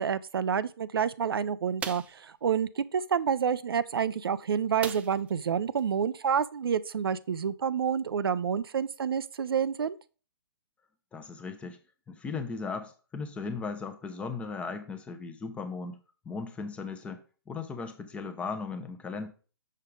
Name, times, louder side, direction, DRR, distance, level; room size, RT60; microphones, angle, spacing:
voice 1, 0.0-10.0, right 7 dB, 65° right, 0.5 m, -28 dB
sound 1, 1.8-2.2 4.8-5.4 5.8-5.9 6.3-6.4, right 7 dB, 10° right, 0.4 m, -38 dB
voice 2, 11.1-11.8 12.1-16.0 16.2-19.3, left 4 dB, 10° left, 0.8 m, -37 dB
6.5 x 6.5 x 3.7 m
figure-of-eight pair, 135°, 13 cm